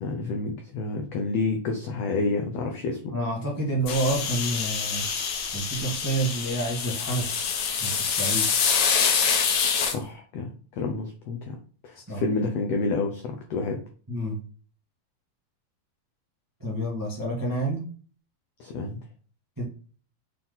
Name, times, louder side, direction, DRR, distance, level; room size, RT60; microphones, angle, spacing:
voice 1, 0.0-3.1 9.9-11.6 11.8-13.8 18.6-19.0, left 3 dB, 90° left, 3 dB, 1.4 m, -29 dB
voice 2, 3.1-5.0 5.5-7.3 7.8-8.5 12.1-12.2 14.1-14.4 16.6-17.9 19.6-19.7, right 1 dB, 15° right, -3 dB, 0.6 m, -28 dB
sound 1, 3.9-9.9, left 6 dB, 65° left, 2.1 m, -26 dB
6.6 x 3.7 x 4.0 m, 0.41 s
omnidirectional pair, 3.9 m